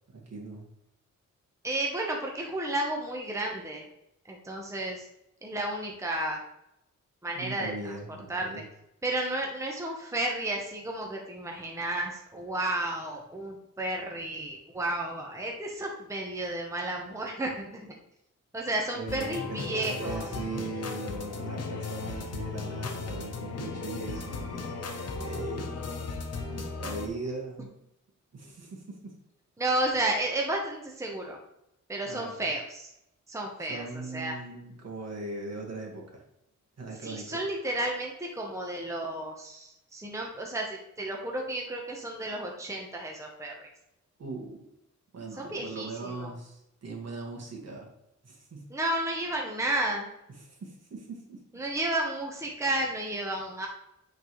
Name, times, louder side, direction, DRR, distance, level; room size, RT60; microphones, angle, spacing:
voice 1, 0.3-0.7 7.3-8.6 19.0-24.9 25.2-25.9 26.8-27.7 28.3-29.2 32.1-32.5 33.6-36.2 36.8-37.4 44.2-44.6 45.1-47.9 48.2-48.7 50.4-51.4, right 3 dB, 55° right, -1 dB, 1.8 m, -39 dB
voice 2, 1.6-3.8 4.2-5.1 5.4-6.4 7.2-7.9 8.3-8.5 9.0-17.9 18.5-20.3 29.6-31.4 31.9-32.9 33.3-34.3 37.0-43.7 45.3-46.3 48.7-50.1 51.5-53.7, right 1 dB, 10° right, 0 dB, 1.0 m, -32 dB
sound 1, 19.1-27.1, left 4 dB, 55° left, 1.0 m, -36 dB
8.5 x 4.0 x 3.1 m, 0.82 s
wide cardioid pair, 110°, 30 cm